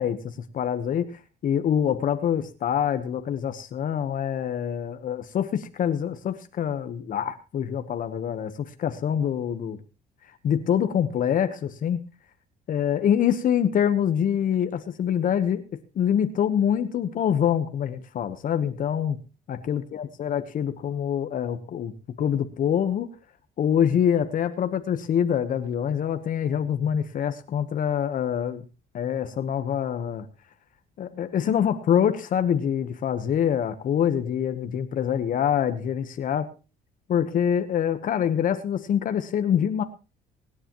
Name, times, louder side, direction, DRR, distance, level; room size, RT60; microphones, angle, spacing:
voice 1, 0.0-9.8 10.4-12.0 12.7-15.6 15.9-19.2 19.5-21.9 22.2-23.1 23.6-28.6 28.9-30.3 31.0-36.5 37.1-39.8, left 9 dB, 55° left, 9 dB, 1.2 m, -25 dB
24.5 x 10.0 x 3.1 m, 0.32 s
cardioid pair, 110°, 17 cm